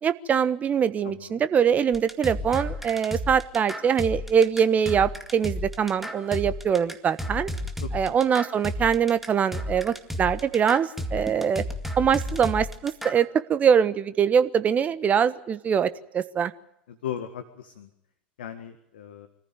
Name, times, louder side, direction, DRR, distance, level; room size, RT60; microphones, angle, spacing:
voice 1, 0.0-7.5 7.9-11.6 12.0-16.5, right 7 dB, 25° right, 14 dB, 1.2 m, -23 dB
sound 1, 1.9-13.3, left 1 dB, 5° right, 2.2 m, -33 dB
voice 2, 17.0-17.9 18.4-19.3, left 9 dB, 65° left, 9 dB, 1.8 m, -36 dB
25.0 x 15.0 x 9.3 m, 0.82 s
figure-of-eight pair, 80°, 6 cm